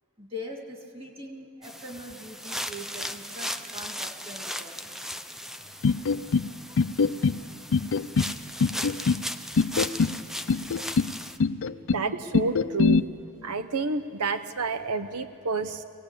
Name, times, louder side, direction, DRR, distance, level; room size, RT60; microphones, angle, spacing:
voice 1, 0.2-5.1, left 1 dB, 25° right, 2 dB, 2.6 m, -42 dB
sound 1, 1.6-11.4, equal, ahead, 0.6 m, -37 dB
sound 2, 5.8-6.5 6.8-7.4 7.7-8.3 8.6-9.2 9.6-10.2 10.5-11.1 11.4-12.0 12.3-13.0, left 4 dB, 60° left, 0.5 m, -23 dB
voice 2, 11.9-13.0 13.4-15.8, right 3 dB, 90° right, 9 dB, 0.8 m, -29 dB
23.5 x 18.5 x 8.4 m, 2.4 s
head